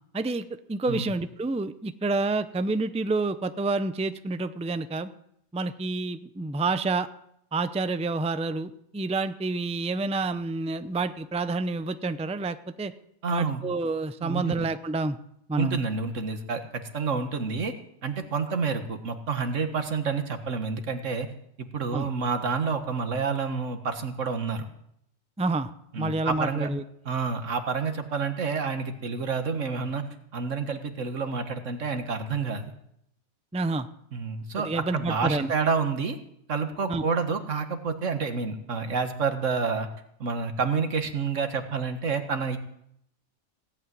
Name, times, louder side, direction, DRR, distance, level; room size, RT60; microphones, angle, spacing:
voice 1, 0.1-5.1 5.5-7.1 7.5-12.9 13.3-15.2 15.5-15.8 21.9-22.1 25.4-25.7 26.0-26.8 33.5-33.9 34.6-35.5 36.9-37.0, right 3 dB, 10° right, 11 dB, 0.5 m, -28 dB
voice 2, 13.2-13.6 14.2-14.7 15.6-17.7 18.0-21.3 21.6-24.7 25.9-26.7 27.1-30.0 30.3-32.7 34.1-36.2 36.5-39.9 40.2-42.6, right 5 dB, 80° right, 7 dB, 1.8 m, -29 dB
17.5 x 8.7 x 9.3 m, 0.74 s
omnidirectional pair, 1.3 m